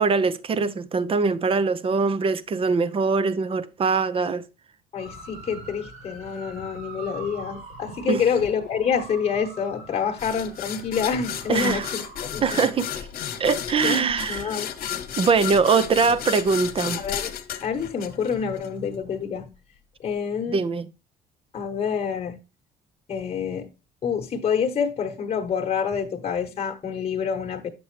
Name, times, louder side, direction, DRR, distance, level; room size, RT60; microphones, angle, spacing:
voice 1, 0.0-4.4 8.1-8.2 11.5-11.9 12.4-12.9 13.4-14.5 15.2-17.0 20.5-20.9, right 5 dB, 35° right, 0.6 m, -22 dB
voice 2, 4.9-12.7 13.8-14.7 15.1-15.3 16.9-17.3 17.6-19.5 20.0-20.6 21.5-22.4 23.1-23.7 24.0-27.7, left 6 dB, 35° left, 1.2 m, -27 dB
sound 1, 5.0-12.3, right 3 dB, 65° right, 4.5 m, -43 dB
sound 2, 10.2-18.7, left 9 dB, 60° left, 1.1 m, -33 dB
8.4 x 6.9 x 3.2 m
cardioid pair, 110°, 17 cm